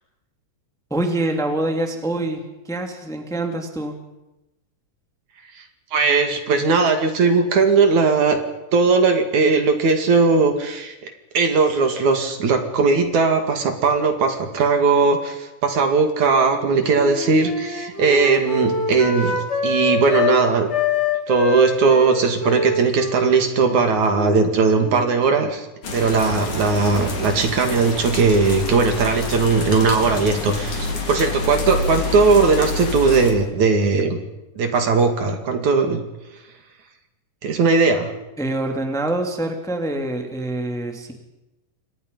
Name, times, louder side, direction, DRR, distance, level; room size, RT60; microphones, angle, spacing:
voice 1, 0.9-4.0 38.4-41.1, right 1 dB, ahead, 3 dB, 2.3 m, -25 dB
voice 2, 5.9-8.4 8.7-20.7 21.3-25.7 25.9-34.2 34.6-36.0 37.4-38.1, right 4 dB, 60° right, 5 dB, 3.6 m, -18 dB
Wind instrument woodwind instrument, 16.4-20.4 20.7-25.2, left 3 dB, 20° left, 2.5 m, -26 dB
sound 1, 25.8-33.3, left 3 dB, 65° left, 4.9 m, -27 dB
28.5 x 24.0 x 5.5 m, 0.97 s
omnidirectional pair, 3.8 m